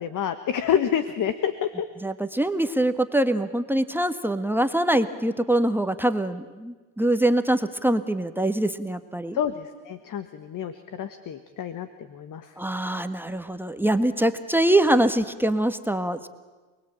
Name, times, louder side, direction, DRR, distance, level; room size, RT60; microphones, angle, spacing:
voice 1, 0.0-1.9 9.3-12.5, left 9 dB, 45° left, 11 dB, 1.6 m, -28 dB
voice 2, 2.0-9.4 12.6-16.3, right 1 dB, 5° right, 8 dB, 1.4 m, -24 dB
28.0 x 20.5 x 9.0 m, 1.3 s
supercardioid pair, 95°, 44 cm